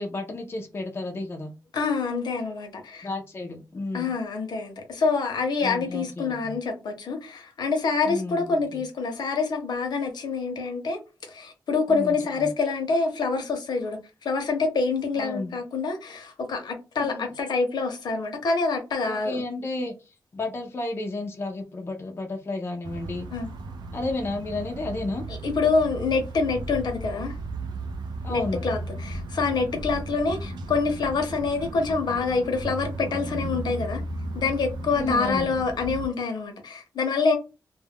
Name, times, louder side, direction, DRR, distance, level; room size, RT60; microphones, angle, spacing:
voice 1, 0.0-1.5 3.0-4.1 5.6-6.6 8.0-8.8 11.9-12.5 15.2-15.6 17.0-17.3 19.0-23.3 23.9-25.2 28.2-28.6 35.0-35.5, left 2 dB, 30° left, 0.5 m, -32 dB
voice 2, 1.7-3.1 3.9-11.0 11.3-19.4 23.3-23.5 25.3-27.4 28.3-34.0 34.3-37.4, left 4 dB, 70° left, 0.7 m, -26 dB
sound 1, 22.8-36.1, right 2 dB, 80° right, 0.5 m, -35 dB
2.2 x 2.1 x 3.4 m
wide cardioid pair, 150°, 7 cm